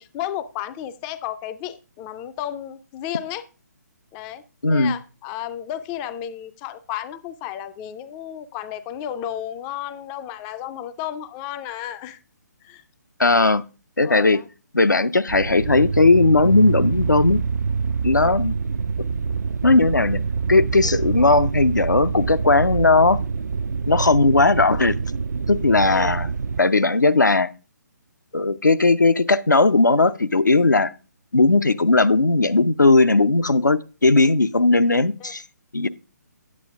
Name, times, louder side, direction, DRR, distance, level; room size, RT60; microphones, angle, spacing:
voice 1, 0.0-3.5 4.1-4.4 4.7-12.2 12.6-12.8 14.0-14.5 18.2-18.3 20.8-20.9 25.8-26.1 35.2-35.3, left 11 dB, 15° left, 0.4 m, -33 dB
voice 2, 4.6-4.9 13.2-13.6 14.0-14.4 14.7-17.4 18.0-18.5 19.6-20.2 20.5-23.2 23.9-25.0 25.5-26.3 26.6-27.5 28.3-30.9 31.3-35.4 35.7-35.9, left 3 dB, 80° left, 0.6 m, -17 dB
sound 1, 15.3-26.6, right 5 dB, 65° right, 0.4 m, -25 dB
9.5 x 8.5 x 3.4 m
figure-of-eight pair, 140°, 10 cm